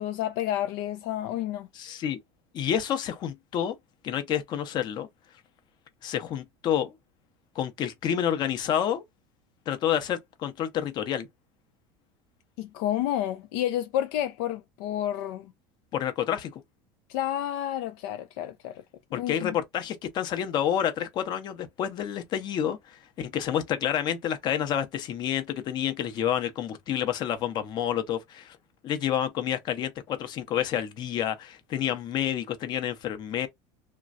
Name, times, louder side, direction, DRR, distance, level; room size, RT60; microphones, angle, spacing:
voice 1, 0.0-1.7 12.6-15.5 17.1-18.8 19.1-19.6, left 12 dB, 70° left, 0.4 m, -30 dB
voice 2, 1.7-2.2 2.5-3.8 4.0-5.1 6.0-6.9 7.5-9.0 9.7-11.3 15.9-16.6 19.1-28.6 28.8-33.5, left 10 dB, 40° left, 0.7 m, -29 dB
3.1 x 2.3 x 2.5 m
supercardioid pair, 135°, 11 cm